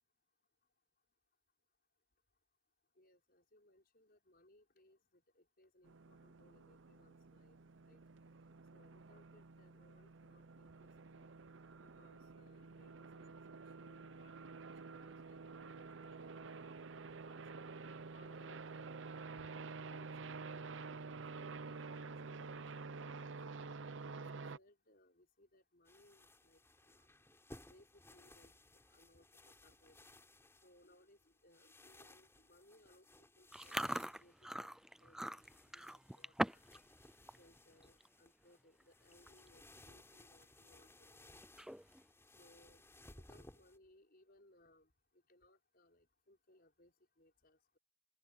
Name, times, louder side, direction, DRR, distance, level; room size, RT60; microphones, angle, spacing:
voice 1, 3.0-7.6 7.9-8.0 8.7-11.3 11.8-14.5 14.8-17.4 18.1-19.0 19.4-20.3 20.6-23.3 24.1-27.1 27.7-28.6 28.9-30.1 30.6-33.1 33.4-35.4 35.7-36.6 37.4-41.4 42.4-42.8 43.3-44.9 45.3-47.8, left 1 dB, 50° left, 5.6 m, -68 dB
sound 1, 5.8-24.6, right 4 dB, 75° right, 0.7 m, -50 dB
sound 2, 25.8-43.8, left 1 dB, 15° left, 4.6 m, -62 dB
Chewing mastication, 33.5-36.8 37.1-37.4 37.8-38.1 38.8-38.9 39.1-39.5 39.9-40.0 41.4-42.0, right 1 dB, 5° right, 0.3 m, -41 dB
open air
head